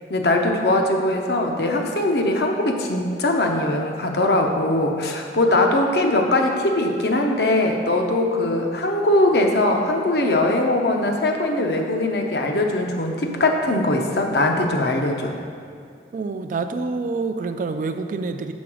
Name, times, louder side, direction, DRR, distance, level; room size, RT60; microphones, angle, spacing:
voice 1, 0.1-15.3, left 1 dB, 60° left, 2 dB, 0.7 m, -21 dB
voice 2, 16.1-18.5, right 4 dB, 45° right, 8 dB, 0.3 m, -27 dB
6.2 x 3.9 x 6.0 m, 2.3 s
head